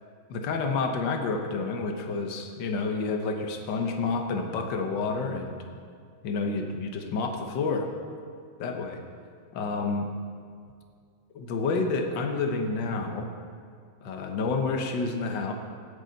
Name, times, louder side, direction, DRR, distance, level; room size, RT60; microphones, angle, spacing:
voice 1, 0.3-5.6 6.2-7.9 8.6-9.0 9.5-10.1 11.3-13.3 14.0-15.5, left 4 dB, 60° left, 4 dB, 1.7 m, -29 dB
17.0 x 8.9 x 4.1 m, 2.2 s
omnidirectional pair, 2.4 m